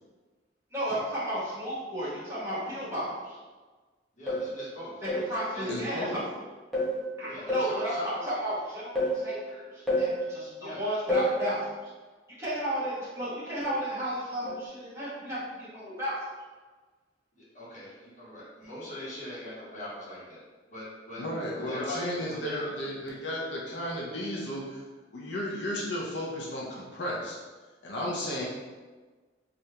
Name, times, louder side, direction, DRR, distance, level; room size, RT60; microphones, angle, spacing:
voice 1, 0.7-3.4 5.0-6.2 7.2-11.9 12.4-16.2, equal, 15° right, -10 dB, 1.2 m, -33 dB
voice 2, 4.2-4.9 5.5-5.6 7.3-8.2 10.6-10.8 17.5-20.4 20.7-21.2 21.7-22.0 22.4-22.7, left 1 dB, 45° left, -8 dB, 1.2 m, -40 dB
sound 1, 4.3-4.6 5.1-5.4 6.7-7.0 7.5-7.8 9.0-9.3 9.9-10.2 11.1-11.4 13.7-13.9 14.5-14.7, equal, ahead, 0.9 m, -28 dB
voice 3, 5.7-6.2 21.2-24.8 25.1-27.4 27.8-28.5, equal, 80° left, -4 dB, 0.6 m, -34 dB
3.3 x 2.5 x 2.8 m, 1.3 s
head